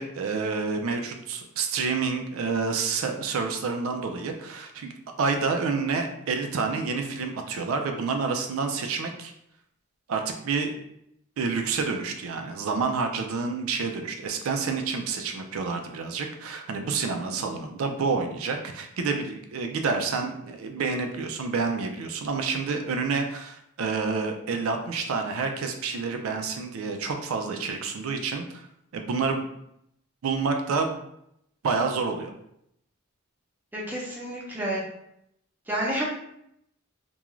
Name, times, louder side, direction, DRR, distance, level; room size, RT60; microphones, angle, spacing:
voice 1, 0.0-4.9 5.2-9.3 10.1-10.7 11.4-28.6 28.9-29.5 30.2-31.0 31.6-32.3, right 4 dB, 85° right, 4 dB, 0.4 m, -28 dB
voice 2, 33.7-34.8 35.7-36.0, right 1 dB, 10° right, -5 dB, 0.6 m, -29 dB
2.4 x 2.2 x 3.0 m, 0.76 s
head